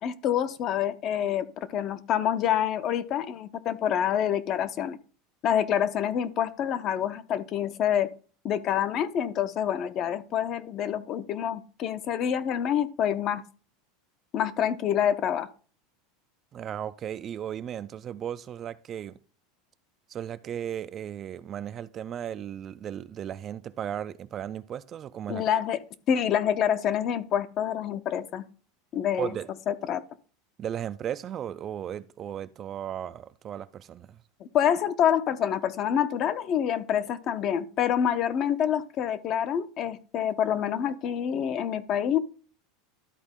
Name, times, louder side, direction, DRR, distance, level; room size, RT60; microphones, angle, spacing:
voice 1, 0.0-5.0 5.4-8.1 8.4-13.4 14.3-15.5 25.3-25.8 26.1-28.4 28.9-29.3 29.7-30.0 34.5-42.2, left 9 dB, 35° left, 0.6 m, -27 dB
voice 2, 16.5-19.2 20.1-25.4 29.2-29.5 30.6-34.2, right 9 dB, 25° right, 0.3 m, -35 dB
12.5 x 4.4 x 3.6 m
supercardioid pair, 160°, 0 cm